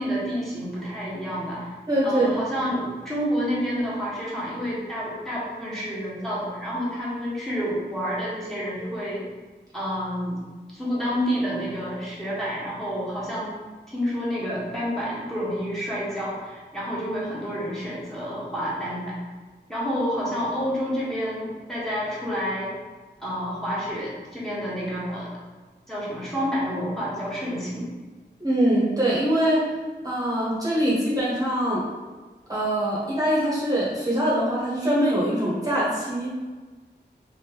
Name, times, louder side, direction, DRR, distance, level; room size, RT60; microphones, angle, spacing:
voice 1, 0.0-1.7 2.0-9.2 9.7-10.4 10.7-13.6 13.9-19.1 19.7-22.7 23.2-25.3 25.9-27.9, equal, ahead, -8 dB, 1.1 m, -29 dB
voice 2, 1.9-2.4 28.4-29.6 30.0-31.8 32.5-36.3, right 1 dB, 20° right, -8 dB, 1.0 m, -23 dB
3.2 x 2.6 x 3.3 m, 1.3 s
wide cardioid pair, 70°, 18 cm